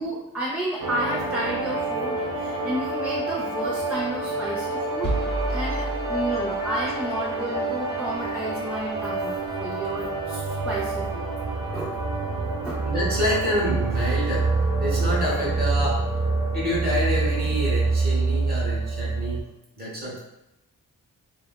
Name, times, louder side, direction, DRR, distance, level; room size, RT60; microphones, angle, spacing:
voice 1, 0.0-5.1 5.5-11.3 11.7-12.0 12.6-12.7, right 1 dB, 5° right, -7 dB, 0.5 m, -32 dB
sound 1, 0.8-19.4, right 3 dB, 80° right, 0.8 m, -27 dB
sound 2, 5.0-7.1, right 1 dB, 35° left, 0.8 m, -30 dB
voice 2, 12.8-14.5 14.8-16.0 16.5-19.5 19.8-20.2, equal, 30° right, -4 dB, 1.1 m, -27 dB
3.3 x 2.3 x 2.2 m, 0.88 s
cardioid pair, 100°, 33 cm